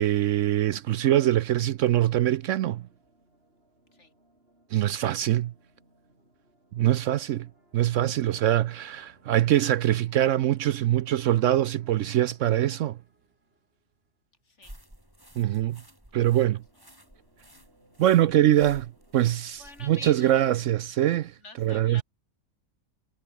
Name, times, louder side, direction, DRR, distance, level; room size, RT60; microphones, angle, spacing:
voice 1, 0.0-2.9 4.7-5.5 6.7-7.5 7.7-13.0 15.4-15.8 16.1-16.6 18.0-22.0, right 12 dB, 70° right, 0.8 m, -23 dB
sound 1, 1.7-14.2 16.1-20.6, right 1 dB, 45° right, 7.2 m, -64 dB
voice 2, 14.4-14.8 16.2-16.4 19.6-20.4 21.4-22.0, left 3 dB, 55° left, 3.3 m, -47 dB
sound 2, 14.6-20.7, right 1 dB, 15° right, 5.6 m, -53 dB
omnidirectional pair, 1.5 m